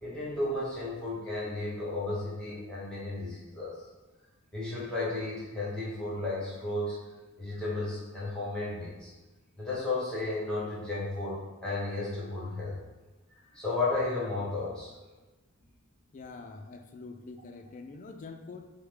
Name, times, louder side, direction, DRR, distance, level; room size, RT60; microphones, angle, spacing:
voice 1, 0.0-3.8 4.5-7.0 7.4-9.1 9.6-12.8 13.5-14.9, left 2 dB, 5° left, -8 dB, 1.2 m, -33 dB
voice 2, 16.1-18.7, left 3 dB, 35° left, 4 dB, 0.3 m, -45 dB
6.1 x 2.1 x 3.7 m, 1.1 s
head